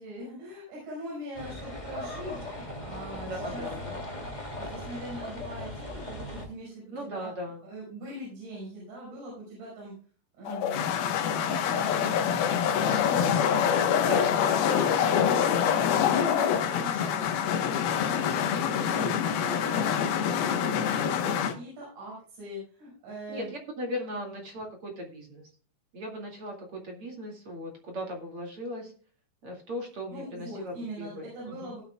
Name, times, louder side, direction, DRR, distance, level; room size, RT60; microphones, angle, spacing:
voice 1, 0.0-4.0 4.5-7.3 7.7-9.9 10.4-12.4 12.6-13.6 14.4-23.5 30.1-31.8, equal, 75° right, -5 dB, 7.6 m, -42 dB
sound 1, 1.3-6.4, left 1 dB, 15° left, 2.2 m, -38 dB
voice 2, 3.2-3.9 6.9-7.6 10.5-10.9 14.1-14.4 23.3-25.5 25.9-28.9 29.4-31.8, equal, 40° right, 1 dB, 2.5 m, -38 dB
sound 2, 10.5-21.5, left 8 dB, 70° left, 2.8 m, -25 dB
18.5 x 8.8 x 2.3 m, 0.43 s
omnidirectional pair, 5.0 m